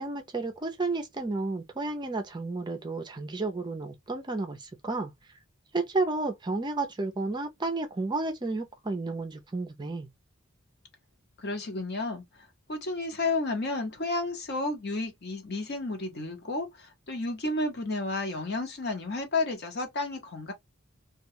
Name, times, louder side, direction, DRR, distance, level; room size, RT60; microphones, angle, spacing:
voice 1, 0.0-5.1 5.7-10.1, right 3 dB, 20° right, 0.4 m, -32 dB
voice 2, 11.4-12.2 12.7-20.5, left 2 dB, 50° left, 0.8 m, -31 dB
2.3 x 2.2 x 2.7 m
head